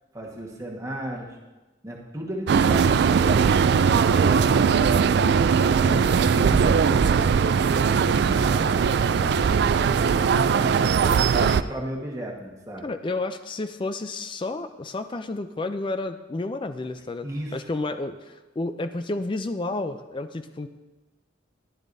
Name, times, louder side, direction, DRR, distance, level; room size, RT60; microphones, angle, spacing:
voice 1, 0.1-1.4 1.8-3.5 5.7-9.5 9.8-12.9 17.2-17.6, right 1 dB, 15° right, -2 dB, 1.4 m, -35 dB
sound 1, 2.5-11.6, right 6 dB, 60° right, 0.3 m, -20 dB
voice 2, 5.8-6.2 11.4-11.5 12.8-20.7, left 2 dB, 25° left, 9 dB, 0.4 m, -31 dB
14.0 x 10.5 x 2.7 m, 1.1 s
head